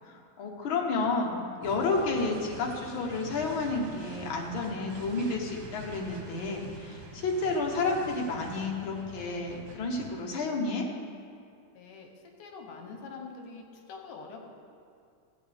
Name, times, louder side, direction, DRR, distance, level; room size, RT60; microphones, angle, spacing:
voice 1, 0.4-10.9, left 3 dB, 55° left, 0 dB, 1.5 m, -31 dB
sound 1, 1.6-10.2, right 2 dB, 70° right, 2.6 m, -45 dB
voice 2, 11.7-14.4, left 4 dB, 80° left, 2 dB, 2.5 m, -45 dB
16.0 x 8.6 x 3.5 m, 2.4 s
omnidirectional pair, 3.6 m